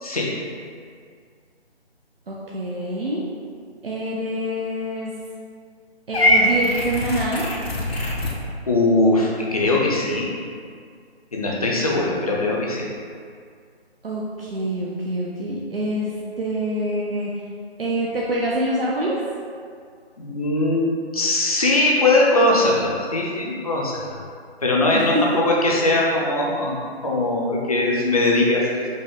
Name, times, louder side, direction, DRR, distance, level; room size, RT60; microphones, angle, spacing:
voice 1, 2.3-3.2 3.8-5.1 6.1-7.5 14.0-17.3 17.8-19.2 24.9-25.2, right 1 dB, 60° right, -5 dB, 0.7 m, -26 dB
Purr / Meow, 6.1-8.4, equal, 70° left, 0.8 m, -21 dB
voice 2, 8.7-10.3 11.3-12.9 20.2-24.1 24.6-25.1 25.4-28.9, left 2 dB, 35° left, -3 dB, 0.6 m, -20 dB
5.2 x 2.2 x 3.6 m, 2.2 s
figure-of-eight pair, 155°, 32 cm